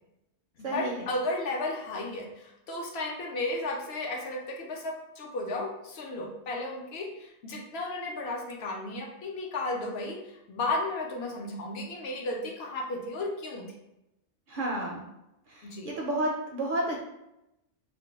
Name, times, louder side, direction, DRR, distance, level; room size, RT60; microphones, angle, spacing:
voice 1, 0.6-13.6 15.6-15.9, left 2 dB, 65° left, 0 dB, 0.8 m, -34 dB
voice 2, 14.5-15.0 15.5-17.0, right 1 dB, 60° right, -2 dB, 0.6 m, -31 dB
2.5 x 2.2 x 3.9 m, 0.89 s
omnidirectional pair, 1.2 m